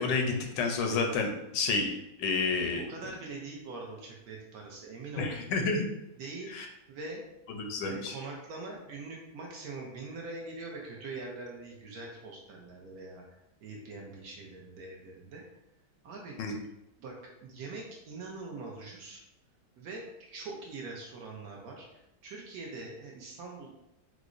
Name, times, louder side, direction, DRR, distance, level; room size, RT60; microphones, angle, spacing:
voice 1, 0.0-2.8 5.2-5.9 6.5-6.7 7.5-8.1 16.4-16.6, left 4 dB, 85° left, 3 dB, 1.2 m, -30 dB
voice 2, 2.7-5.3 6.2-6.5 6.9-7.2 7.8-15.4 16.0-16.4 17.0-19.2 19.8-23.7, right 3 dB, 70° right, -1 dB, 1.0 m, -43 dB
4.7 x 2.0 x 2.5 m, 0.86 s
omnidirectional pair, 1.9 m